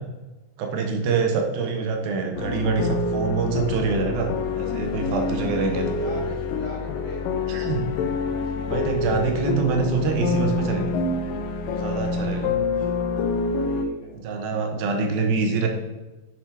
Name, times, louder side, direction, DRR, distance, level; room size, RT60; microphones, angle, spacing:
voice 1, 0.6-4.3 4.6-5.8 7.5-7.9 8.7-10.9 11.7-12.5 14.1-15.7, right 5 dB, 75° right, 3 dB, 3.0 m, -25 dB
sound 1, 2.4-13.9, left 4 dB, 75° left, 2.2 m, -27 dB
voice 2, 5.4-7.5 12.5-13.2 13.7-14.2, equal, 50° left, -5 dB, 4.1 m, -39 dB
8.4 x 7.1 x 4.8 m, 1.1 s
omnidirectional pair, 4.3 m